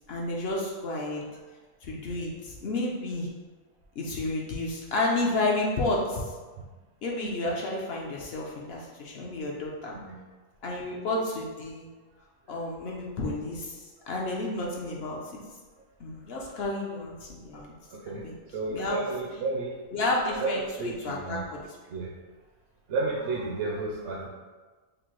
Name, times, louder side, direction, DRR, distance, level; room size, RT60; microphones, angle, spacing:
voice 1, 0.1-1.2 1.8-3.3 4.0-6.3 7.0-10.0 10.6-11.9 12.5-15.2 16.0-17.7 18.1-18.4 18.7-19.0 19.9-21.8, left 2 dB, 60° left, -2 dB, 0.7 m, -31 dB
voice 2, 17.9-18.2 18.5-19.8 20.4-21.4 21.9-22.1 22.9-24.3, right 3 dB, 65° right, -3 dB, 0.8 m, -32 dB
5.1 x 2.1 x 3.0 m, 1.3 s
omnidirectional pair, 1.4 m